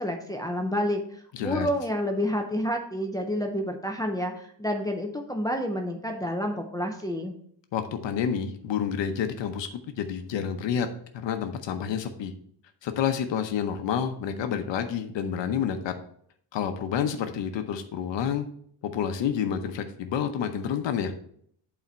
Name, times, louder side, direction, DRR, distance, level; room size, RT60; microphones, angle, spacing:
voice 1, 0.0-7.3, equal, 10° left, 3 dB, 0.5 m, -29 dB
voice 2, 1.3-1.7 7.7-9.7 10.0-10.9 11.1-12.3 12.8-15.9 16.5-18.4 18.8-21.1, left 8 dB, 85° left, 7 dB, 0.8 m, -29 dB
8.3 x 4.3 x 4.3 m, 0.64 s
wide cardioid pair, 175°, 43 cm